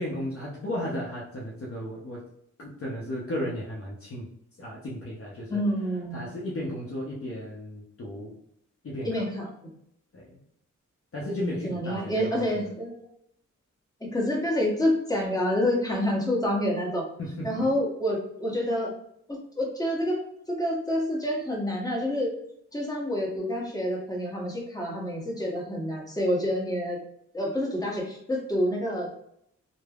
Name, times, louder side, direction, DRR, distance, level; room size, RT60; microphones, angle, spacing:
voice 1, 0.0-2.2 2.6-4.3 4.6-5.6 6.1-8.3 8.8-9.2 10.1-10.4 11.1-12.4 17.2-17.7, left 1 dB, 45° left, -4 dB, 0.7 m, -34 dB
voice 2, 5.5-6.3 9.0-9.7 11.6-12.9 14.0-17.1 17.4-18.9 19.3-20.2 20.5-22.4 22.7-27.0 27.3-29.1, left 1 dB, 10° left, -2 dB, 1.0 m, -28 dB
3.2 x 2.0 x 2.3 m, 0.72 s
cardioid pair, 60°, 30 cm